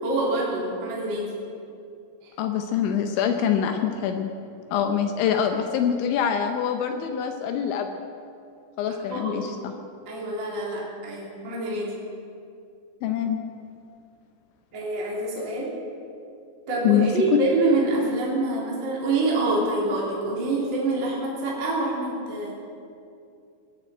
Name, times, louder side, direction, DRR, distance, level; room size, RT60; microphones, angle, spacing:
voice 1, 0.0-1.3 2.2-2.3 8.8-9.5 10.1-12.0 14.7-15.7 16.7-22.5, right 2 dB, 30° right, -4 dB, 3.0 m, -26 dB
voice 2, 2.4-4.3 4.7-7.9 8.8-9.7 13.0-13.4 16.8-17.1, left 8 dB, 80° left, 6 dB, 2.9 m, -24 dB
20.5 x 7.7 x 9.1 m, 2.5 s
omnidirectional pair, 5.8 m